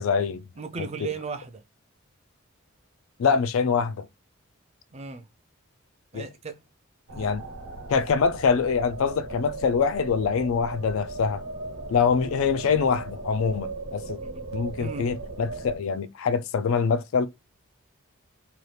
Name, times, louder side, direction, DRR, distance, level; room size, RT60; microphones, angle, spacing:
voice 1, 0.0-0.4 0.8-1.1 3.2-4.1 6.1-6.3 7.2-7.4 7.9-11.4 11.9-14.2 14.5-17.3, left 5 dB, 70° left, 0.4 m, -24 dB
voice 2, 0.6-1.6 4.9-5.2 6.1-6.6 7.1-7.3 14.2-14.4 14.8-15.1, right 5 dB, 30° right, 0.3 m, -36 dB
sound 1, 7.1-15.8, right 2 dB, 70° right, 0.9 m, -38 dB
2.7 x 2.3 x 3.2 m
head